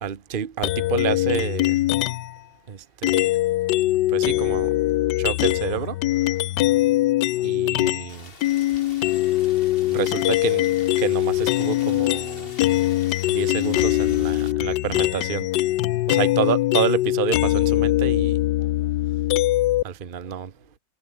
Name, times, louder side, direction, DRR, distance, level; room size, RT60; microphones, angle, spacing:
voice 1, 0.0-1.8 2.7-3.2 4.1-4.7 5.2-6.0 7.4-8.3 9.9-10.7 11.0-12.5 13.3-15.5 16.1-18.4 19.8-20.5, right 8 dB, 35° right, 1.1 m, -28 dB
sound 1, 0.6-2.4 3.0-8.1 8.4-19.8, left 16 dB, 75° left, 1.2 m, -22 dB
voice 2, 6.5-6.9 10.4-10.8 14.5-15.4 16.4-16.6 18.7-19.1 20.3-20.8, right 2 dB, 55° right, 7.2 m, -57 dB
Rain, 8.1-14.5, left 3 dB, 30° left, 2.4 m, -45 dB
omnidirectional pair, 2.0 m